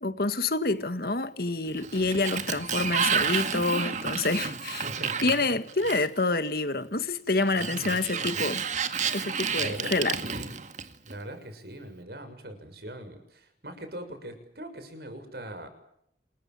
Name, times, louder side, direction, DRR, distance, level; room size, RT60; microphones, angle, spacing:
voice 1, 0.0-4.8 5.2-8.6 9.1-10.2, left 3 dB, 55° left, 1.8 m, -27 dB
Sliding door, 1.7-6.3 7.4-11.1, right 6 dB, 40° right, 2.0 m, -30 dB
voice 2, 4.8-6.0 7.6-8.8 9.6-10.5 11.0-15.7, right 1 dB, 60° right, 6.7 m, -41 dB
28.5 x 22.0 x 7.7 m
head